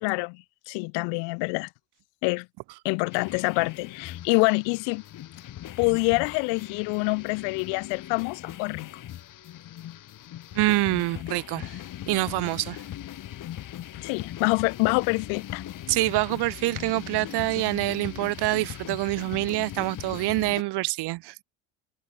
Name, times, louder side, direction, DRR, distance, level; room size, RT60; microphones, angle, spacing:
voice 1, 0.0-1.7 2.2-2.5 2.8-5.0 5.8-8.9 13.9-15.6, left 32 dB, 85° left, 1.0 m, -26 dB
sound 1, 3.1-20.6, left 12 dB, 45° left, 2.5 m, -40 dB
voice 2, 10.5-12.8 15.9-21.4, right 20 dB, 65° right, 1.3 m, -26 dB
cardioid pair, 125°, 42 cm